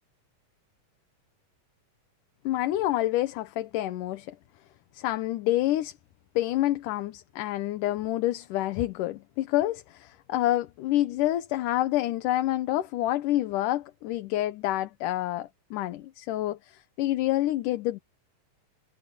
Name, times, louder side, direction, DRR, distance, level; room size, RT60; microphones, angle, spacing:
voice 1, 2.4-4.4 4.9-6.0 6.4-18.0, left 15 dB, 75° left, 2.4 m, -28 dB
omnidirectional pair, 3.9 m